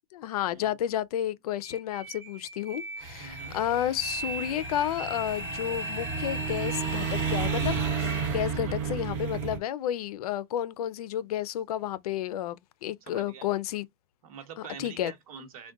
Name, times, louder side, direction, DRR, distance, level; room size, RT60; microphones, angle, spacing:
voice 1, 0.1-13.9 14.8-15.1, left 11 dB, 90° left, 0.5 m, -31 dB
sound 1, 1.6-8.3, equal, 15° right, 0.5 m, -39 dB
sound 2, 3.0-9.6, right 6 dB, 40° right, 0.9 m, -32 dB
voice 2, 3.2-3.6 8.6-9.0 13.0-13.5 14.2-15.7, right 6 dB, 70° right, 1.1 m, -45 dB
3.8 x 2.2 x 2.3 m
supercardioid pair, 170°, 19 cm